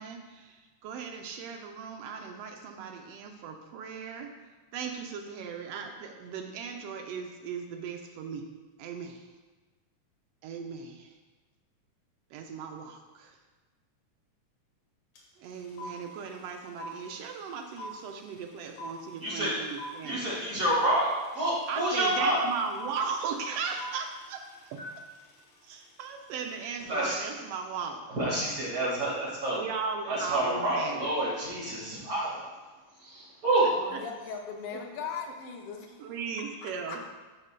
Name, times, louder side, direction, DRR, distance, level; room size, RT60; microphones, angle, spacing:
voice 1, 0.0-4.3 4.7-8.4 8.8-9.3 10.4-11.2 12.3-13.4 15.4-20.4 21.7-24.4 24.7-24.8 25.6-28.0 29.5-31.1 33.6-34.0 34.7-34.8 35.3-35.4 36.0-37.0, right 5 dB, 85° right, 3 dB, 1.4 m, -37 dB
sound 1, 15.2-15.3 15.4-26.6, left 1 dB, 70° left, 2.4 m, -44 dB
voice 2, 19.2-19.6 20.0-21.1 21.3-22.4 26.9-27.2 28.2-29.6 30.1-32.4 33.0-33.7, right 1 dB, 35° right, -6 dB, 1.9 m, -28 dB
voice 3, 33.7-35.9 36.6-37.0, left 6 dB, 85° left, 0 dB, 1.3 m, -39 dB
11.0 x 5.5 x 2.2 m, 1.3 s
omnidirectional pair, 3.4 m